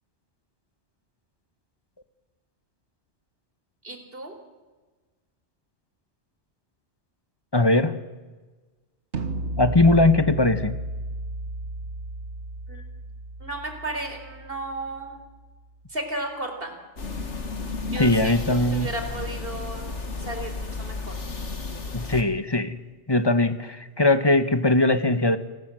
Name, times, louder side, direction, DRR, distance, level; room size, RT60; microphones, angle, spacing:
voice 1, 3.8-4.3 12.7-12.8 13.4-15.2 15.9-16.7 17.9-19.9 20.2-21.2, right 2 dB, 55° right, 5 dB, 4.3 m, -34 dB
voice 2, 7.5-7.9 9.6-10.7 17.9-18.9 21.9-25.4, left 2 dB, 20° left, 11 dB, 1.2 m, -20 dB
sound 1, 9.1-15.1, right 3 dB, 80° right, 1.7 m, -33 dB
sound 2, 17.0-22.2, left 3 dB, 90° left, 2.3 m, -33 dB
29.0 x 20.0 x 7.7 m, 1.3 s
omnidirectional pair, 1.2 m